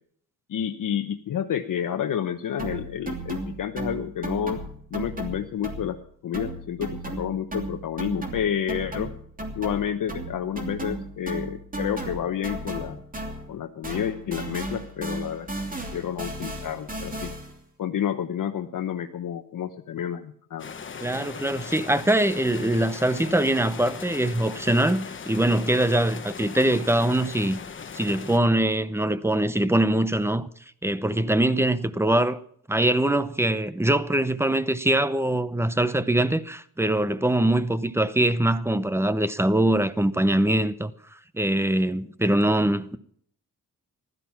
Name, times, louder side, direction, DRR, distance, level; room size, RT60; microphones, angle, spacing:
voice 1, 0.5-4.6 4.9-6.0 6.2-9.1 9.6-13.0 13.5-15.5 15.9-17.3 17.8-20.7, left 9 dB, 65° left, 1.0 m, -30 dB
sound 1, 2.6-6.1 6.3-13.6 13.8-17.6, right 2 dB, 25° right, 2.9 m, -35 dB
sound 2, 20.6-28.4, left 6 dB, 35° left, 1.1 m, -39 dB
voice 2, 21.0-27.6 27.9-30.5 30.8-32.4 32.7-40.9 41.3-43.0, right 1 dB, 5° right, 0.7 m, -23 dB
16.0 x 12.5 x 5.8 m
wide cardioid pair, 140°, 35 cm